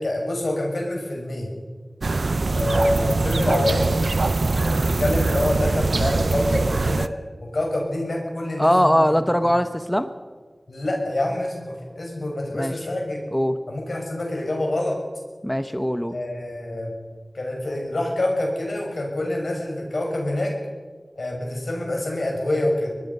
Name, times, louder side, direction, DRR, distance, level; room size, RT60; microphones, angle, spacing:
voice 1, 0.0-1.5 2.5-4.0 4.6-7.1 7.4-9.5 10.7-13.2 13.7-15.0 16.1-16.9 17.3-20.5 21.2-22.9, left 1 dB, 85° left, 0 dB, 6.0 m, -26 dB
sound 1, 2.0-7.1, right 3 dB, 85° right, 0.6 m, -22 dB
voice 2, 8.6-10.1 12.5-12.7 13.3-13.6 15.4-16.1, equal, 10° left, 10 dB, 1.2 m, -21 dB
24.5 x 20.0 x 5.6 m, 1.5 s
wide cardioid pair, 40°, 0 cm